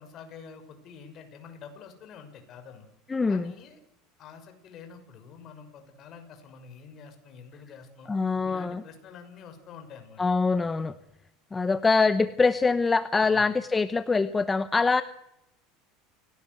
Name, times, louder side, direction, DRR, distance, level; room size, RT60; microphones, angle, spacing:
voice 1, 0.0-2.9 3.3-3.8 4.2-8.1 8.4-10.2 13.2-13.5, left 6 dB, 40° left, 7 dB, 6.4 m, -47 dB
voice 2, 3.1-3.5 8.1-8.8 10.2-10.9 11.5-15.0, left 4 dB, 15° left, 13 dB, 0.9 m, -24 dB
28.5 x 18.0 x 8.1 m, 0.87 s
supercardioid pair, 130°, 0 cm